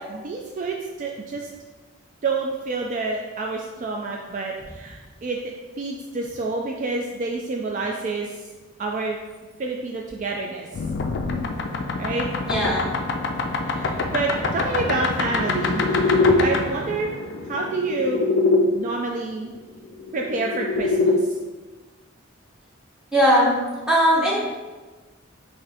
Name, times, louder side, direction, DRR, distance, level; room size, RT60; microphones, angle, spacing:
voice 1, 0.1-1.5 2.2-5.4 5.8-8.5 8.8-9.2 9.6-10.7 12.0-12.3 13.7-17.1 17.4-18.2 18.7-19.5 20.1-21.4, right 3 dB, 40° right, 0 dB, 0.3 m, -28 dB
sound 1, 10.7-18.6 19.9-21.2, left 3 dB, 60° left, 0.4 m, -24 dB
voice 2, 12.5-12.9 23.1-23.5 23.9-24.4, equal, 5° right, -7 dB, 1.1 m, -18 dB
4.0 x 2.6 x 4.1 m, 1.3 s
head